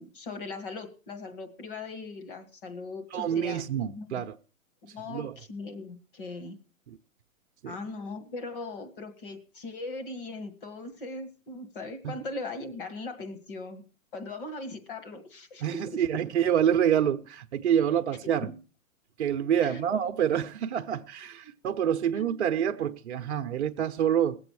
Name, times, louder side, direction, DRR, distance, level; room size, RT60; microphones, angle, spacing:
voice 1, 0.0-4.3 4.8-6.6 7.7-13.8 14.1-16.0 18.4-18.6 19.6-19.9 22.2-22.3, left 2 dB, 40° left, 1.9 m, -39 dB
voice 2, 3.1-4.3 5.1-5.3 6.9-7.0 7.6-7.7 12.0-12.2 15.6-18.5 19.2-24.4, right 9 dB, 50° right, 0.9 m, -27 dB
20.0 x 7.9 x 4.7 m
hypercardioid pair, 165°, 42 cm